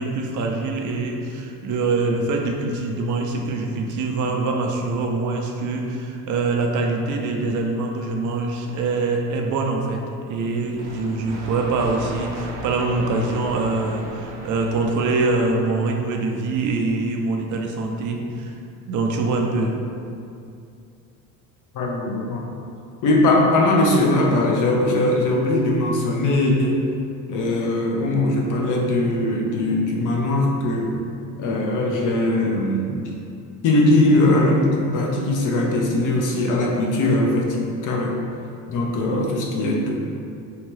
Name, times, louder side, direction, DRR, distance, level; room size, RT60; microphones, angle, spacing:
voice 1, 0.0-10.0 10.3-18.5 18.9-19.8, right 3 dB, 45° right, 1 dB, 0.5 m, -24 dB
sound 1, 10.7-16.3, right 1 dB, 90° right, 0.6 m, -37 dB
voice 2, 21.7-22.5 23.0-26.8 27.3-31.0 31.4-33.0 33.6-38.2 38.7-39.9, left 1 dB, 45° left, -2 dB, 0.7 m, -20 dB
2.8 x 2.2 x 3.0 m, 2.5 s
hypercardioid pair, 75°, 44 cm